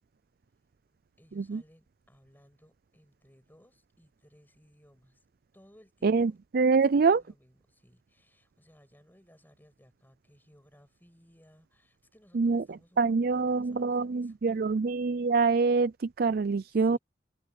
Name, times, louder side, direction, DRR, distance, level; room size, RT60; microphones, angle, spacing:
voice 1, 1.2-5.3 5.5-6.4 6.7-14.8 16.7-17.0, equal, 10° left, 7.6 m, -61 dB
voice 2, 6.0-7.2 12.3-12.6 13.0-17.0, right 4 dB, 50° right, 0.4 m, -25 dB
head